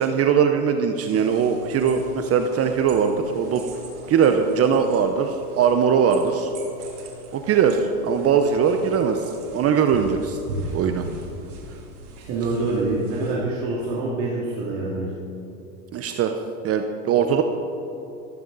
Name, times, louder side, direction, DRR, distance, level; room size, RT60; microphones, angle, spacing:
voice 1, 0.0-3.6 4.1-6.5 7.3-10.4 10.7-11.0 15.9-16.4 16.6-17.4, right 7 dB, 35° right, 6 dB, 0.9 m, -20 dB
sound 1, 1.0-13.4, right 2 dB, 85° right, 3.1 m, -39 dB
voice 2, 12.3-15.1, right 2 dB, 50° right, -5 dB, 2.7 m, -25 dB
14.5 x 13.5 x 4.1 m, 3.0 s
hypercardioid pair, 110°, 44 cm